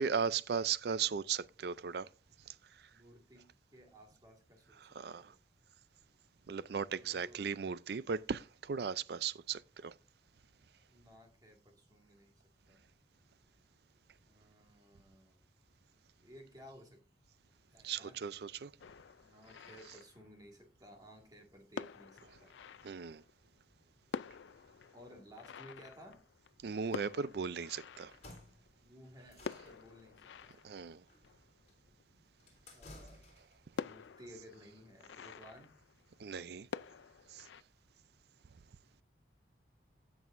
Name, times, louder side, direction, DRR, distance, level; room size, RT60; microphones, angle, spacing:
voice 1, 0.0-2.1 2.5-2.6 4.8-5.3 6.5-9.9 17.8-18.7 22.8-23.2 26.6-28.1 30.6-31.0 36.2-36.7 37.3-37.4, right 6 dB, 55° right, 0.4 m, -37 dB
voice 2, 2.9-3.5 3.7-5.4 7.0-7.5 10.9-12.4 12.7-12.9 14.3-15.4 16.2-17.0 17.7-18.3 19.2-22.5 24.9-26.2 28.8-30.6 32.7-33.3 33.8-35.7, equal, 20° right, 1.9 m, -57 dB
sound 1, 18.8-20.6 21.4-21.5 21.8-23.5 23.8-23.9 24.1-28.9 29.4-32.0 32.6-32.7 33.0-33.1 33.8-36.4 36.7-37.6, left 6 dB, 75° left, 0.4 m, -48 dB
sound 2, 28.0-33.7, left 2 dB, 35° left, 3.6 m, -57 dB
16.5 x 6.2 x 2.5 m
head